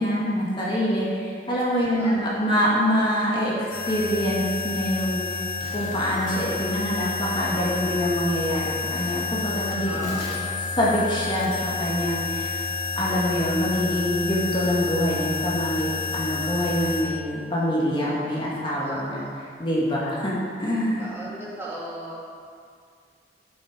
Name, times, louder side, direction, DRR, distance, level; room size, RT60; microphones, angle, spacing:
voice 1, 0.0-5.4 5.7-10.1 10.8-12.6 13.0-19.2 19.6-21.1, equal, 30° left, -6 dB, 2.1 m, -25 dB
voice 2, 1.8-2.5 9.9-10.4 18.8-19.3 21.0-22.2, right 1 dB, 15° right, -7 dB, 2.2 m, -37 dB
sound 1, 3.7-17.0, left 4 dB, 55° left, 2.7 m, -30 dB
13.0 x 7.7 x 5.1 m, 2.2 s
head